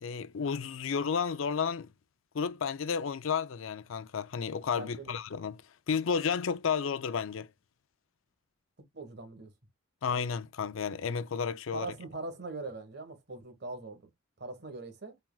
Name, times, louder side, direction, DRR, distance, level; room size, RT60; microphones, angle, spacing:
voice 1, 0.0-1.9 2.3-5.6 5.9-7.5 10.0-11.9, left 6 dB, 75° left, 0.5 m, -32 dB
voice 2, 4.7-5.2 8.9-9.5 11.7-14.1 14.4-15.2, right 3 dB, 55° right, 1.3 m, -41 dB
4.4 x 3.5 x 2.3 m
head